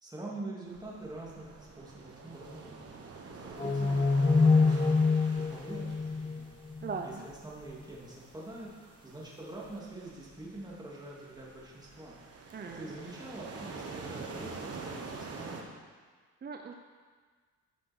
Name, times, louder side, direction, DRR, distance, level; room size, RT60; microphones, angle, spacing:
voice 1, 0.0-2.8 3.3-6.5 7.0-8.7 9.0-12.2 12.6-15.7, right 2 dB, 15° right, -5 dB, 2.8 m, -45 dB
sound 1, 0.6-15.6, right 4 dB, 55° right, 1.5 m, -47 dB
sound 2, 3.6-7.0, left 4 dB, 20° left, 0.4 m, -26 dB
voice 2, 6.8-7.2 12.5-12.9 16.4-16.7, right 5 dB, 35° right, 4 dB, 0.6 m, -39 dB
12.5 x 6.2 x 4.6 m, 1.5 s
cardioid pair, 90°, 30 cm